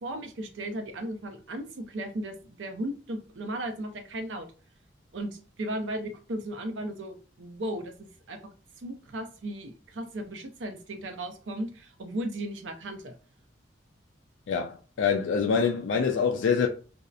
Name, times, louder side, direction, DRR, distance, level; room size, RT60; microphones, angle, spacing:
voice 1, 0.0-4.5 5.1-8.4 8.8-13.1, right 1 dB, 80° right, 0.5 m, -36 dB
voice 2, 14.5-16.7, left 6 dB, 85° left, 0.4 m, -25 dB
2.7 x 2.0 x 2.3 m
head